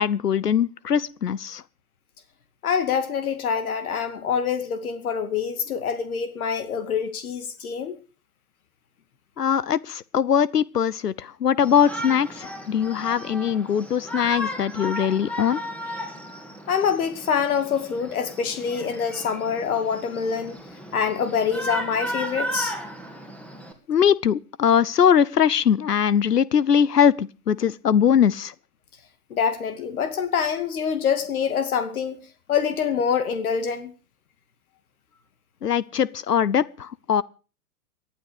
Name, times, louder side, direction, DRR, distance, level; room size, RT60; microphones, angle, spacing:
voice 1, 0.0-1.6 9.4-15.6 23.9-28.5 35.6-37.2, left 8 dB, 85° left, 0.8 m, -21 dB
voice 2, 2.6-8.0 16.7-20.6 20.9-22.8 29.3-32.2 32.5-33.9, left 7 dB, 65° left, 2.4 m, -25 dB
Shout, 11.6-23.7, equal, 5° left, 2.8 m, -35 dB
19.0 x 12.0 x 5.0 m
figure-of-eight pair, 110°, 46 cm